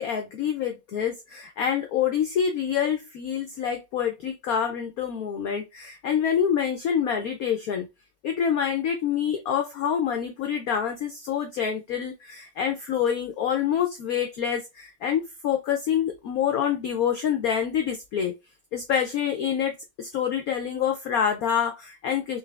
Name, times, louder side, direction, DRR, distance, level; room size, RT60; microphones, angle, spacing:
voice 1, 0.0-7.9 8.2-18.3 18.7-22.4, left 8 dB, 85° left, 5 dB, 0.7 m, -26 dB
3.7 x 3.2 x 3.2 m, 0.24 s
omnidirectional pair, 2.2 m